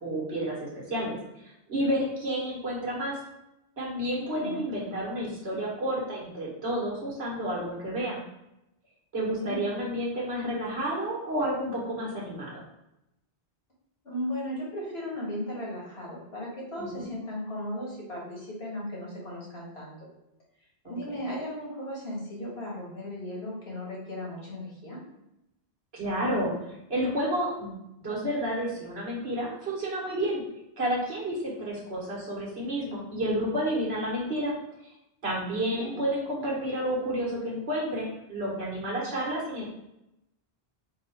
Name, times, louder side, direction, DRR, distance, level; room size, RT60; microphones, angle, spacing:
voice 1, 0.0-1.2 1.4-3.2 3.8-8.2 9.1-12.6 16.8-17.1 25.9-26.5 26.9-30.4 30.8-34.5 35.2-39.7, right 1 dB, 90° right, -4 dB, 1.6 m, -30 dB
voice 2, 4.2-4.6 9.4-9.6 14.0-20.1 20.8-25.0 35.6-36.0, left 1 dB, 85° left, -4 dB, 1.8 m, -36 dB
4.5 x 2.4 x 4.4 m, 0.89 s
omnidirectional pair, 1.0 m